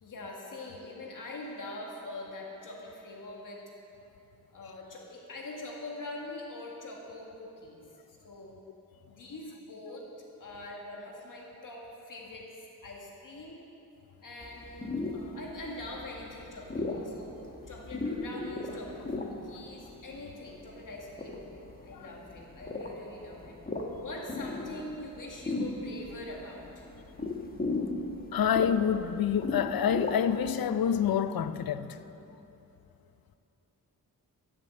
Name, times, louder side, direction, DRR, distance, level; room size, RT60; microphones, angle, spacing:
voice 1, 0.0-3.6 4.5-7.8 8.2-8.6 9.1-12.5 12.8-13.6 14.2-17.3 17.7-21.3 21.8-23.6 24.0-26.9, left 2 dB, 60° left, 1.9 m, -43 dB
sound 1, 14.4-30.5, left 2 dB, 25° left, 1.2 m, -37 dB
voice 2, 28.3-32.0, left 8 dB, 75° left, 0.6 m, -27 dB
15.0 x 7.5 x 7.9 m
wide cardioid pair, 125°, 35 cm